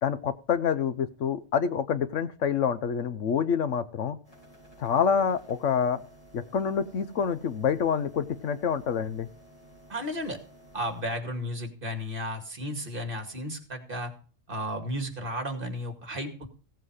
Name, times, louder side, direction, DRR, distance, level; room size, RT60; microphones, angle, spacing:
voice 1, 0.0-4.2 4.8-6.0 6.3-9.3, left 7 dB, 75° left, 14 dB, 1.2 m, -27 dB
sound 1, 4.2-11.0, right 1 dB, 25° left, 6.2 m, -54 dB
voice 2, 9.9-10.4 10.7-14.1 14.5-16.5, equal, 45° right, 7 dB, 2.4 m, -33 dB
16.5 x 7.6 x 4.9 m, 0.39 s
omnidirectional pair, 1.3 m